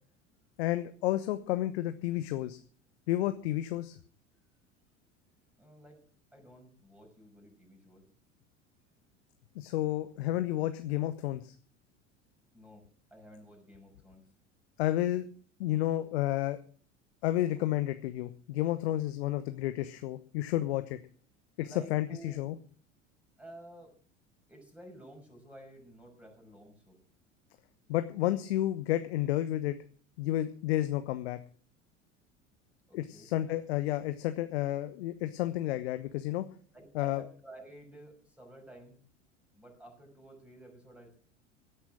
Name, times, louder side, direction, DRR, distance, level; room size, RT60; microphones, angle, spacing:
voice 1, 0.6-2.6 3.1-4.0 9.5-11.5 14.8-15.2 15.6-16.6 17.2-21.0 21.6-22.6 27.9-29.8 30.2-31.4 32.9-36.5 36.9-37.2, left 14 dB, 60° left, 10 dB, 1.1 m, -31 dB
voice 2, 5.6-6.0 6.3-8.0 12.5-14.2 21.6-22.4 23.4-23.9 24.5-27.0 32.9-33.6 36.7-39.0 39.5-41.2, right 1 dB, 5° right, 1 dB, 6.3 m, -52 dB
16.5 x 9.4 x 6.2 m, 0.44 s
figure-of-eight pair, 70°, 36 cm